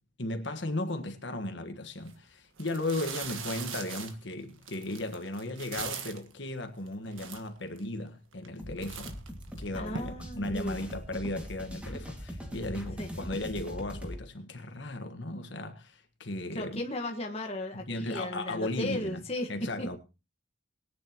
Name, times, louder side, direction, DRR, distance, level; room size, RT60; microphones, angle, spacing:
voice 1, 0.2-9.2 9.6-16.8 17.7-19.2 19.5-20.0, left 1 dB, 60° left, 1.5 m, -36 dB
sound 1, 2.0-2.1 2.6-6.3 6.9-7.0 7.1-7.8 8.3-8.6 8.8-10.0, right 6 dB, 75° right, 1.6 m, -40 dB
sound 2, 8.6-14.2, equal, 5° right, 2.2 m, -41 dB
voice 2, 9.7-10.8 13.0-13.1 16.5-19.9, left 1 dB, 30° left, 1.5 m, -35 dB
21.5 x 9.6 x 3.0 m
head